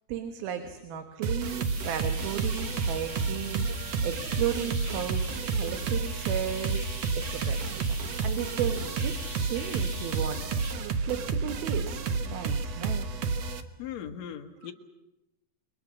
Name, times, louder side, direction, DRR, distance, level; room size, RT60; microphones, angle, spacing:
voice 1, 0.1-7.6 8.2-10.4 11.0-13.1, right 9 dB, 85° right, 6 dB, 3.3 m, -35 dB
sound 1, 1.2-13.6, right 4 dB, 60° right, 1.9 m, -31 dB
sound 2, 1.4-10.7, right 2 dB, 30° right, 2.5 m, -40 dB
voice 2, 13.8-14.7, left 9 dB, 55° left, 4 dB, 2.5 m, -38 dB
28.5 x 22.0 x 6.3 m, 0.95 s
omnidirectional pair, 4.2 m